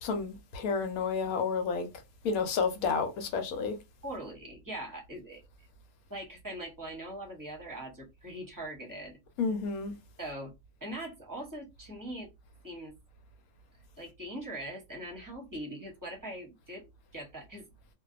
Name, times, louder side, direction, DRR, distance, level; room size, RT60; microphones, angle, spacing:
voice 1, 0.0-1.9 2.2-3.8 9.4-9.9, left 5 dB, 85° left, 1.1 m, -30 dB
voice 2, 4.0-5.4 6.1-9.2 10.2-10.5 10.8-12.3 12.6-12.9 14.0-17.6, right 1 dB, 15° right, 0.7 m, -41 dB
2.6 x 2.2 x 2.4 m
omnidirectional pair, 1.5 m